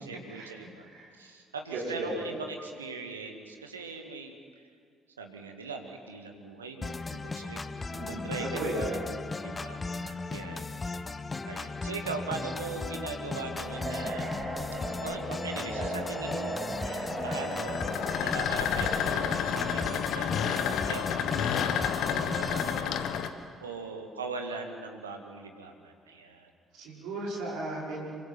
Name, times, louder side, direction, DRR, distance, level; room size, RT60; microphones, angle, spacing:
voice 1, 0.0-0.9 1.1-4.7 5.2-10.8 11.1-14.3 15.0-23.4 23.6-26.5, right 4 dB, 85° right, 4 dB, 1.8 m, -41 dB
voice 2, 1.7-2.2 7.9-9.0 26.8-28.0, right 2 dB, 60° right, -3 dB, 5.4 m, -35 dB
sound 1, 6.8-22.8, left 3 dB, 25° left, 1.1 m, -37 dB
sound 2, 13.5-23.3, left 8 dB, 60° left, 1.3 m, -32 dB
sound 3, 13.6-19.9, right 2 dB, 40° right, 5.1 m, -37 dB
26.5 x 24.0 x 6.0 m, 2.3 s
figure-of-eight pair, 45°, 0 cm